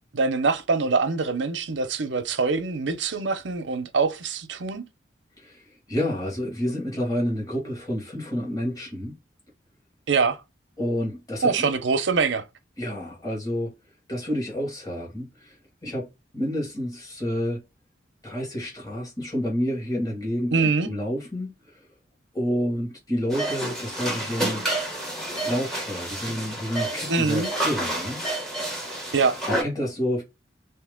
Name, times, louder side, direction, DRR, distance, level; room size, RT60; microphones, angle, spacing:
voice 1, 0.1-4.8 10.1-10.4 11.4-12.4 20.5-20.9 27.1-27.5 29.1-29.3, right 4 dB, 75° right, 0.7 m, -24 dB
voice 2, 5.4-9.2 10.8-11.7 12.8-13.7 14.1-15.6 15.8-17.6 18.2-21.9 22.3-24.6 25.4-28.2 29.5-30.2, equal, 20° left, 1.5 m, -29 dB
sound 1, 23.3-29.6, right 1 dB, 5° left, 1.0 m, -29 dB
2.9 x 2.8 x 3.5 m
head